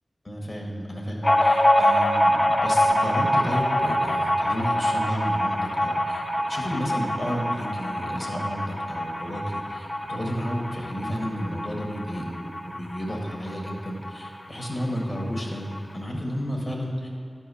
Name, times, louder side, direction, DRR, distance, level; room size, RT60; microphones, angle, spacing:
voice 1, 0.2-12.4 12.6-17.1, equal, 40° left, -1 dB, 1.7 m, -32 dB
sound 1, 1.2-14.4 14.6-14.7 15.0-15.8, left 1 dB, 25° left, 0.4 m, -25 dB
11.0 x 4.6 x 5.6 m, 2.3 s
wide cardioid pair, 50°, 0 cm